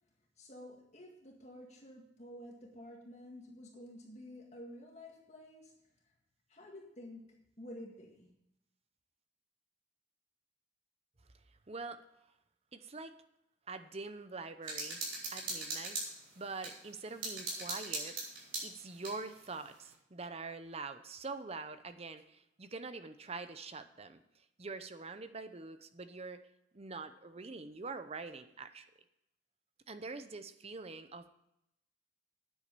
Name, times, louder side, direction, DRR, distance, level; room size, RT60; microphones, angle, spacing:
voice 1, 0.4-5.7 6.5-8.3, left 1 dB, 40° left, -1 dB, 1.9 m, -51 dB
voice 2, 11.7-12.0 12.7-13.1 13.7-15.0 15.3-16.0 16.4-18.1 18.6-24.2 24.6-26.4 26.7-28.9 29.9-31.3, right 3 dB, 35° right, 10 dB, 0.7 m, -44 dB
sound 1, 14.6-16.7 17.2-19.2, right 3 dB, 85° right, 4.8 m, -39 dB
9.9 x 8.2 x 6.8 m, 0.81 s
head